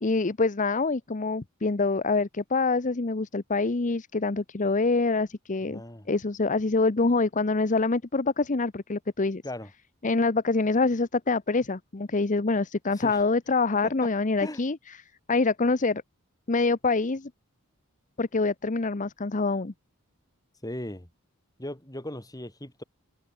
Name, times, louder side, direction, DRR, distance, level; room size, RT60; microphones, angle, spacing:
voice 1, 0.0-5.8 6.1-9.4 10.0-14.8 15.3-16.0 16.5-17.3 18.2-19.7, left 3 dB, 35° left, 0.8 m, -25 dB
voice 2, 5.6-6.1 9.4-9.7 12.9-13.2 13.8-14.1 14.4-14.6 20.6-21.1 21.6-22.8, left 1 dB, 20° left, 7.3 m, -38 dB
head